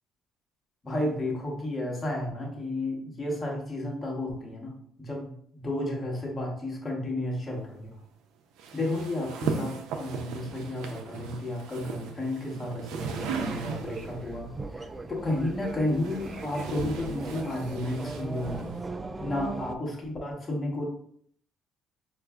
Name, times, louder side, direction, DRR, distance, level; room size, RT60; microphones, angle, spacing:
voice 1, 0.8-8.0 8.7-18.8 19.2-20.8, left 1 dB, 30° left, -2 dB, 1.1 m, -32 dB
sound 1, 8.6-14.2 15.3-18.8, right 5 dB, 85° right, 0.4 m, -37 dB
sound 2, 13.0-19.8, right 3 dB, 20° right, 0.3 m, -39 dB
4.6 x 2.5 x 2.3 m, 0.63 s
cardioid pair, 95°, 0 cm